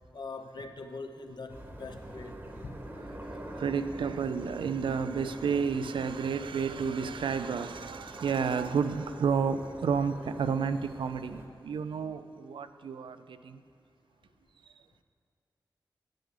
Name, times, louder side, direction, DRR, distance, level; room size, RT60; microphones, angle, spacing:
voice 1, 0.1-2.4 2.6-2.8, left 3 dB, 60° left, 6 dB, 0.8 m, -42 dB
sound 1, 1.5-11.5, right 1 dB, 25° right, 1.1 m, -46 dB
voice 2, 3.2-13.6 14.6-14.7, right 6 dB, 90° right, 11 dB, 0.4 m, -31 dB
10.0 x 8.0 x 4.9 m, 2.4 s
wide cardioid pair, 80°, 8 cm